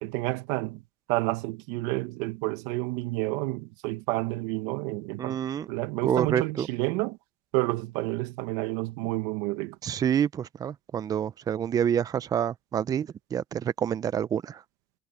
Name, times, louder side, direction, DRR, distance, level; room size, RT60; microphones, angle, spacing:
voice 1, 0.0-0.8 1.1-5.4 5.7-7.2 7.5-9.8, right 21 dB, 70° right, 1.5 m, -30 dB
voice 2, 5.2-5.7 6.0-6.7 9.8-14.6, right 9 dB, 30° right, 0.7 m, -28 dB
supercardioid pair, 105°, 12 cm